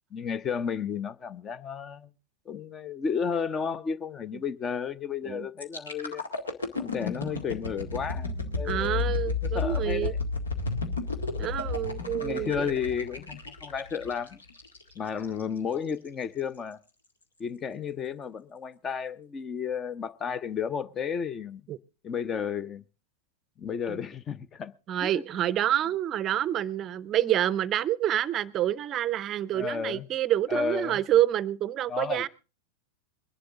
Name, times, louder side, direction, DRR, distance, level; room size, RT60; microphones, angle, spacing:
voice 1, 0.1-2.1 2.5-6.2 6.8-9.2 9.5-10.2 12.2-14.4 14.9-16.8 17.4-21.6 22.0-22.8 23.6-24.7 25.0-25.2 29.5-30.1 30.5-31.0 31.9-32.3, left 6 dB, 25° left, 0.7 m, -32 dB
sound 1, 5.6-15.4 15.9-16.1, left 4 dB, 70° left, 1.9 m, -32 dB
voice 2, 8.6-10.1 11.4-12.7 21.7-21.8 23.9-24.0 24.9-32.3, right 12 dB, 30° right, 0.6 m, -27 dB
22.0 x 11.5 x 3.7 m
figure-of-eight pair, 90°, 0 cm